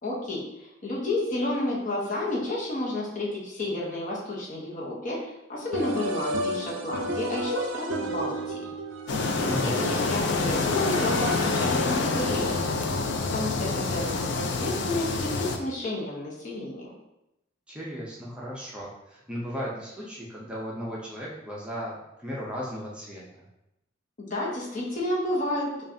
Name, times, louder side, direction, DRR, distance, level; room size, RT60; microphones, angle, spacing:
voice 1, 0.0-8.7 9.3-12.6 13.3-16.9 24.2-25.7, left 1 dB, 45° left, -4 dB, 1.0 m, -31 dB
sound 1, 5.7-11.8, right 1 dB, 80° right, 0.5 m, -33 dB
sound 2, 9.1-15.6, left 3 dB, 65° left, 0.4 m, -27 dB
voice 2, 9.5-9.9 17.7-23.4, equal, 5° right, -6 dB, 0.6 m, -36 dB
5.2 x 2.4 x 2.7 m, 0.88 s
head